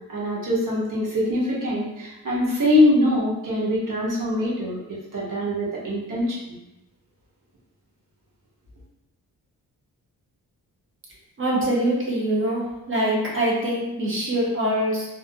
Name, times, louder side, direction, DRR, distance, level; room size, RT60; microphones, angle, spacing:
voice 1, 0.1-6.6, left 1 dB, 60° right, -6 dB, 0.8 m, -23 dB
voice 2, 11.4-15.1, right 1 dB, 35° right, -5 dB, 0.6 m, -24 dB
2.5 x 2.0 x 2.5 m, 0.94 s
wide cardioid pair, 165°, 36 cm